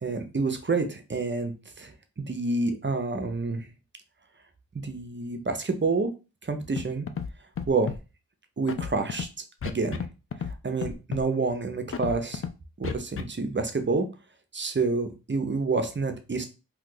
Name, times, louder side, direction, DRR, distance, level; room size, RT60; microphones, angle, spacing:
voice 1, 0.0-1.5 1.8-1.9 2.2-3.7 4.8-6.1 6.4-7.1 7.7-7.9 8.6-9.3 9.6-10.0 10.6-12.4 12.8-14.1 14.5-16.5, right 3 dB, 35° right, 7 dB, 0.7 m, -28 dB
Scratching (performance technique), 6.8-6.9 7.1-7.3 7.6-8.0 8.7-9.2 9.6-10.1 10.3-10.5 10.8-11.2 11.9-12.5 12.8-13.2, left 7 dB, 40° left, 0.4 m, -31 dB
2.8 x 2.4 x 3.8 m, 0.30 s
cardioid pair, 50°, 34 cm